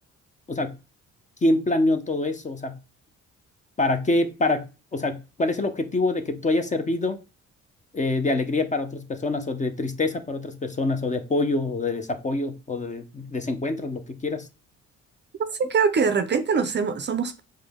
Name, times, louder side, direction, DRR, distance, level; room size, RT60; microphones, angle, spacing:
voice 1, 1.4-2.8 3.8-7.2 7.9-14.5, left 2 dB, 25° left, 0.6 m, -25 dB
voice 2, 15.4-17.4, right 5 dB, 35° right, 0.5 m, -23 dB
4.9 x 2.1 x 3.5 m
cardioid pair, 90°, 30 cm